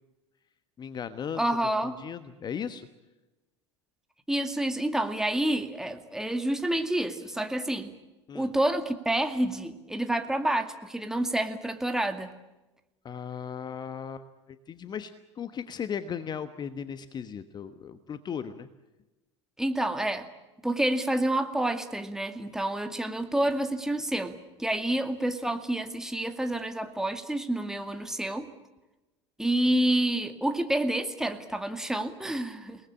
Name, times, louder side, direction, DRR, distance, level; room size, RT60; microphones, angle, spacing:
voice 1, 0.8-1.4 1.8-2.9 8.3-8.5 13.0-18.7, left 7 dB, 30° left, 12 dB, 1.2 m, -37 dB
voice 2, 1.4-2.0 4.3-7.9 8.3-12.3 19.6-20.3 20.6-28.5 29.4-32.8, right 1 dB, 5° right, 6 dB, 2.2 m, -28 dB
29.0 x 19.5 x 8.7 m, 1.1 s
figure-of-eight pair, 75°, 15 cm